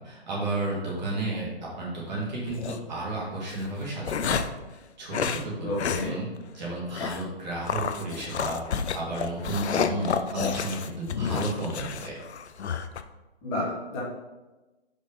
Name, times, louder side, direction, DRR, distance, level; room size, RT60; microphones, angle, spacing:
voice 1, 0.0-1.5 1.8-4.5 5.0-6.3 6.5-8.6 8.9-12.1, right 2 dB, 40° right, -5 dB, 2.1 m, -32 dB
sound 1, 2.5-2.8 3.5-4.6 5.1-5.4 5.8-6.1 6.4-6.5 6.9-7.3 7.7-13.0, left 6 dB, 90° left, 0.6 m, -30 dB
voice 2, 5.6-6.1 13.4-14.0, left 1 dB, 20° left, -5 dB, 1.4 m, -30 dB
5.3 x 3.6 x 5.2 m, 1.1 s
hypercardioid pair, 160°, 32 cm